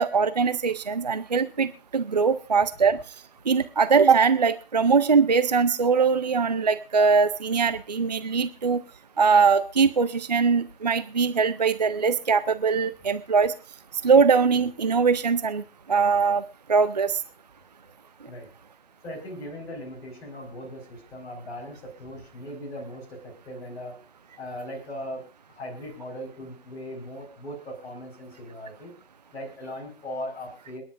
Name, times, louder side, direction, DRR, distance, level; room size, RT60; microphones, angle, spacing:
voice 1, 0.0-3.0 3.5-8.8 9.2-13.5 14.0-15.6 15.9-16.4 16.7-17.2, right 5 dB, 40° right, 13 dB, 0.6 m, -21 dB
voice 2, 19.0-24.0 24.4-28.9 29.3-30.8, equal, 10° left, -4 dB, 4.7 m, -39 dB
29.0 x 10.5 x 2.6 m, 0.31 s
figure-of-eight pair, 145°, 32 cm